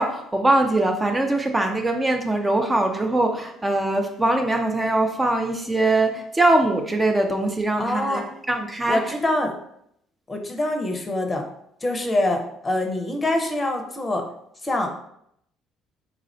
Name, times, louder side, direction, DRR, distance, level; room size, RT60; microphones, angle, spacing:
voice 1, 0.0-9.0, right 2 dB, 15° right, 4 dB, 0.4 m, -22 dB
voice 2, 7.8-8.2 8.9-9.5 10.3-11.4 11.8-14.2 14.6-14.9, left 1 dB, 25° left, 4 dB, 0.6 m, -24 dB
3.8 x 2.4 x 3.1 m, 0.73 s
figure-of-eight pair, 55°, 0 cm